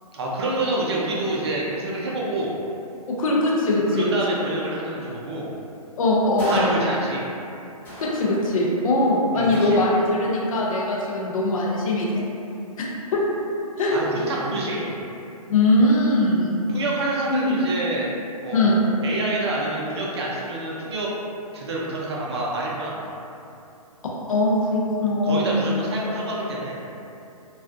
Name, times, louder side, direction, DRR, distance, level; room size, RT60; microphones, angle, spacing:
voice 1, 0.1-2.5 3.9-5.5 6.5-7.3 9.3-9.8 13.9-15.0 16.7-18.1 18.4-18.7 19.0-21.1 21.5-23.1 25.2-26.8, right 2 dB, 45° right, -4 dB, 0.4 m, -27 dB
voice 2, 3.2-4.4 6.0-6.8 8.0-12.2 12.8-12.9 13.1-13.2 13.8-14.0 15.5-16.6 17.3-17.6 18.5-18.8 24.3-25.6, left 1 dB, 60° left, -4 dB, 0.6 m, -21 dB
sound 1, 6.4-7.4 7.8-8.8 9.5-10.5, equal, 10° left, 0.6 m, -35 dB
2.4 x 2.1 x 2.5 m, 2.7 s
hypercardioid pair, 140°, 20 cm